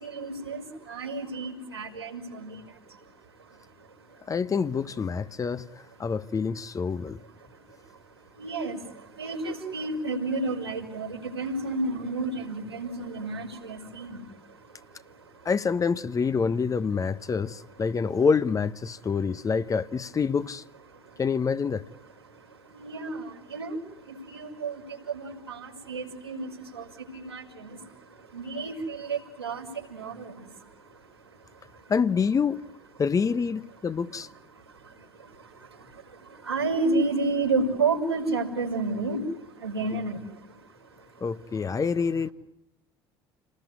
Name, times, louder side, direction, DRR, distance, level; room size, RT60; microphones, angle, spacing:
voice 1, 0.0-0.6 0.9-2.5 8.4-8.7 9.2-14.2 22.7-23.2 23.5-23.8 24.3-24.7 25.1-26.5 26.8-26.9 27.1-27.4 28.3-29.7 29.9-30.2 36.5-39.2 39.6-40.2, right 3 dB, 90° right, 5.4 m, -30 dB
voice 2, 4.3-5.6 6.0-7.2 15.4-20.6 21.2-21.8 31.9-32.6 33.0-34.3 41.2-42.3, left 5 dB, 25° left, 1.0 m, -26 dB
29.5 x 20.0 x 9.6 m
figure-of-eight pair, 60°, 13 cm